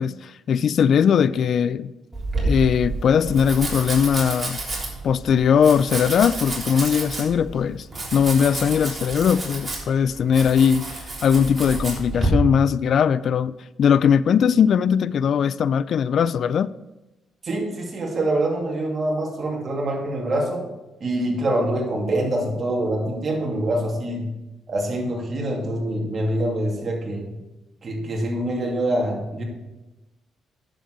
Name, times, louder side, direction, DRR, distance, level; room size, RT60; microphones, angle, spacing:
voice 1, 0.0-1.9 2.4-4.6 5.0-7.9 8.1-13.5 13.8-16.7, left 7 dB, 60° left, 0.3 m, -20 dB
Domestic sounds home sounds, 2.1-12.3, right 2 dB, 25° right, 3.5 m, -30 dB
voice 2, 17.4-20.6 21.0-24.3 24.7-27.3 27.8-29.4, right 1 dB, 40° right, 2.6 m, -25 dB
10.0 x 7.4 x 4.7 m
cardioid pair, 90°, 0 cm